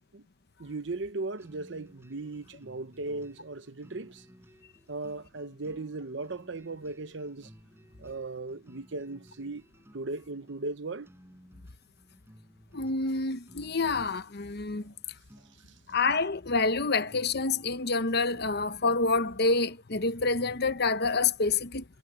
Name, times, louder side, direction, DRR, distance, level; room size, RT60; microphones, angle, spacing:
voice 1, 0.6-4.2 4.9-7.5 8.0-9.6 9.9-11.1, right 3 dB, 65° right, 0.9 m, -37 dB
sound 1, 1.4-19.9, equal, 15° right, 7.4 m, -58 dB
voice 2, 12.7-14.9 15.9-21.8, left 3 dB, 60° left, 1.0 m, -27 dB
head